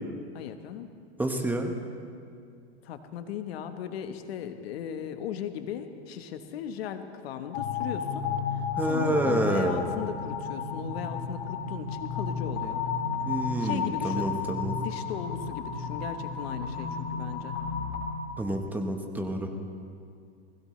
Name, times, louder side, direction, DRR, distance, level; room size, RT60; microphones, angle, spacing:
voice 1, 0.3-0.9 2.8-8.3 8.5-12.8 13.6-14.3 14.7-17.6, left 9 dB, 65° left, 8 dB, 1.2 m, -37 dB
voice 2, 1.2-1.7 8.8-9.9 13.2-14.7 18.4-19.5, right 1 dB, 5° right, 4 dB, 1.1 m, -28 dB
sound 1, 7.5-18.0, left 5 dB, 50° left, 3.8 m, -32 dB
20.0 x 16.5 x 3.2 m, 2.3 s
hypercardioid pair, 135°, 32 cm